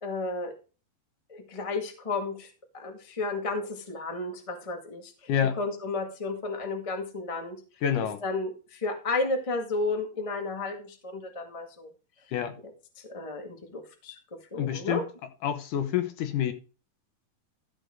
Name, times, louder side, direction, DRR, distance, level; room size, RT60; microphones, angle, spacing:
voice 1, 0.0-0.5 1.3-5.3 5.6-7.6 8.2-11.9 13.0-14.2 14.5-15.0, left 3 dB, 40° left, 0.4 m, -32 dB
voice 2, 7.8-8.2 12.3-12.6 14.6-15.0 15.4-16.5, left 9 dB, 70° left, 2.2 m, -27 dB
14.0 x 6.7 x 3.8 m
omnidirectional pair, 4.4 m